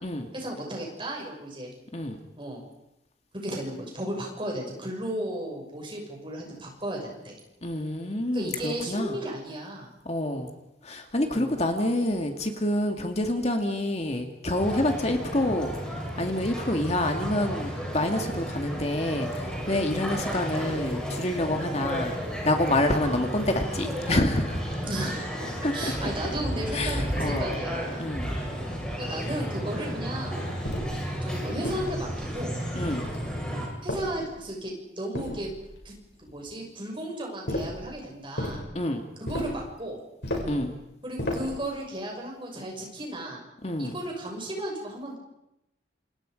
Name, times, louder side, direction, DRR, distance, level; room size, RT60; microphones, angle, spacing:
voice 1, 0.3-1.7 2.4-2.7 3.3-7.3 8.3-9.9 11.2-11.5 24.8-25.4 25.7-28.0 29.0-30.4 31.2-32.6 33.8-35.5 35.8-35.9 36.2-38.6 39.2-40.0 41.0-43.4 43.8-45.2, right 1 dB, 25° right, 0 dB, 6.4 m, -34 dB
voice 2, 7.6-9.2 10.1-10.5 10.8-15.7 16.2-22.1 22.4-24.6 25.6-25.9 26.7-27.5 28.0-28.3 32.7-33.1 38.7-39.0 40.5-40.8 43.6-44.0, left 1 dB, 35° left, 4 dB, 2.0 m, -27 dB
sound 1, 14.5-33.7, equal, 5° left, 7.9 m, -33 dB
sound 2, 30.6-31.1 31.6-32.3 32.8-33.3 33.9-34.5 35.1-35.8 37.5-37.8 38.4-38.6 39.3-39.7 40.2-40.6 41.2-41.6, left 1 dB, 60° left, 6.8 m, -33 dB
28.0 x 28.0 x 5.2 m, 0.87 s
head